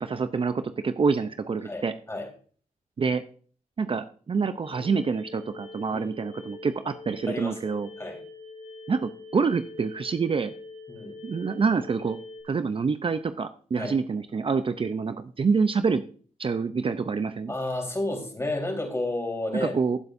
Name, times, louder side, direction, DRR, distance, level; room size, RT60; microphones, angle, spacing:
voice 1, 0.0-1.9 3.0-3.2 3.8-7.9 8.9-10.5 11.2-12.2 12.4-16.0 16.4-17.5 19.6-20.0, right 5 dB, 40° right, 10 dB, 0.6 m, -27 dB
voice 2, 1.6-2.3 5.9-6.2 7.3-8.2 10.9-11.2 13.8-14.0 17.5-19.8, left 2 dB, 20° left, 2 dB, 4.0 m, -31 dB
sound 1, 4.6-12.4, left 3 dB, 40° left, 4.1 m, -44 dB
16.0 x 8.0 x 2.6 m, 0.43 s
cardioid pair, 75°, 14 cm